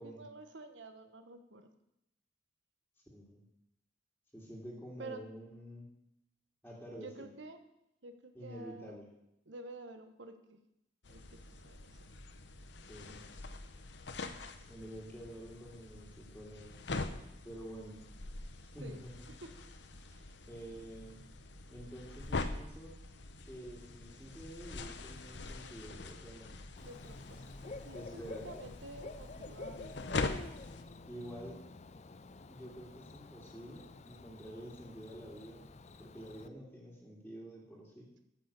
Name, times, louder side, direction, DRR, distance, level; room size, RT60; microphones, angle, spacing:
voice 1, 0.0-1.7 5.0-5.2 7.0-7.6 8.0-8.9 9.5-10.6 11.1-12.0 18.8-19.0 19.4-19.5 20.1-20.4 26.8-30.0 30.7-30.8, right 2 dB, 80° right, 8 dB, 1.2 m, -50 dB
voice 2, 3.1-3.4 4.3-5.9 6.6-7.3 8.3-9.1 12.9-13.2 14.6-16.7 17.4-18.0 18.6-19.3 20.5-21.3 21.7-23.0 23.5-26.6 27.9-28.6 31.1-31.6 32.5-35.6 36.0-38.1, equal, 5° left, -5 dB, 2.4 m, -48 dB
sound 1, 11.0-30.8, left 3 dB, 70° left, 0.9 m, -44 dB
Bird / Cricket, 26.8-36.5, left 3 dB, 40° left, 0.5 m, -49 dB
13.5 x 6.3 x 6.8 m, 0.83 s
head